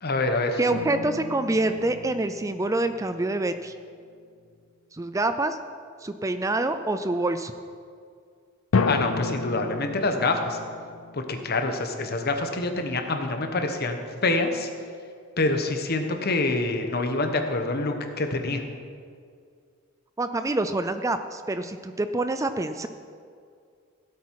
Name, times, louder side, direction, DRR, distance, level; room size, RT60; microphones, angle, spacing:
voice 1, 0.0-0.6 8.8-10.6 11.1-14.7 15.4-18.6, left 2 dB, 50° left, 6 dB, 1.2 m, -26 dB
voice 2, 0.6-3.7 4.9-5.6 6.0-7.5 20.2-22.9, right 2 dB, 15° right, 10 dB, 0.4 m, -26 dB
sound 1, 0.7-3.8 8.7-12.3, left 4 dB, 80° left, 0.5 m, -32 dB
16.0 x 8.4 x 4.8 m, 2.2 s
head